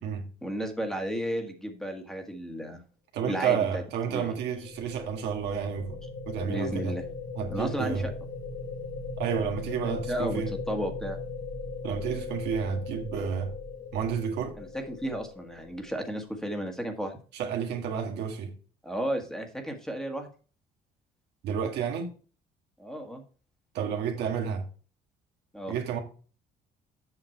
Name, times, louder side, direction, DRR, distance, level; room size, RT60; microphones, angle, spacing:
voice 1, 0.4-2.8 3.2-4.3 6.5-7.0 7.5-8.1 9.8-11.2 14.6-17.1 18.8-20.3 22.8-23.2 25.5-25.7, equal, 5° left, 1.7 m, -33 dB
voice 2, 3.1-6.0 6.3-6.9 7.4-8.1 9.2-10.5 11.8-13.5 13.9-14.5 17.3-18.5 21.4-22.1 23.7-24.7 25.7-26.0, right 7 dB, 80° right, 1.8 m, -30 dB
sound 1, 4.2-16.2, left 3 dB, 80° left, 3.4 m, -39 dB
8.0 x 5.7 x 4.5 m
cardioid pair, 110°, 17 cm